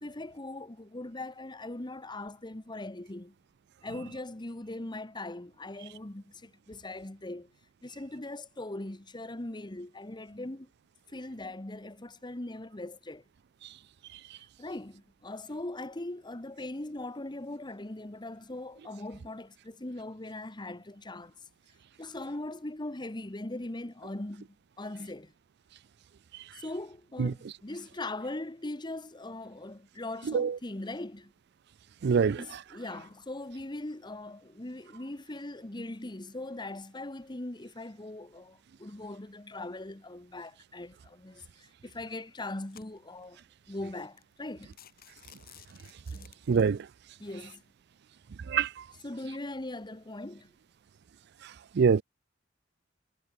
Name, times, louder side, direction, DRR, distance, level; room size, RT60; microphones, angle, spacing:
voice 1, 0.0-3.3 3.8-7.5 7.8-10.7 11.1-13.2 14.6-21.3 22.0-25.3 26.5-31.3 32.2-44.8 46.1-46.3 47.2-47.6 49.0-50.5, left 2 dB, 25° left, 1.2 m, -40 dB
voice 2, 32.0-32.4 46.5-46.8 48.5-48.7 51.8-52.0, right 6 dB, 60° right, 0.4 m, -23 dB
sound 1, 41.4-41.7 42.3-43.3 43.8-43.9 44.2-44.3 44.6-46.8, left 9 dB, 50° left, 7.7 m, -55 dB
head